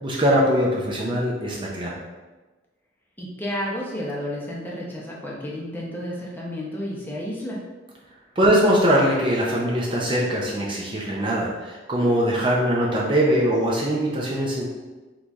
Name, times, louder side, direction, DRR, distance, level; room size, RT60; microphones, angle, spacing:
voice 1, 0.0-1.9 8.4-14.6, equal, 25° right, -4 dB, 0.6 m, -21 dB
voice 2, 3.2-7.6, equal, 10° left, -4 dB, 0.8 m, -31 dB
3.9 x 3.1 x 3.5 m, 1.2 s
head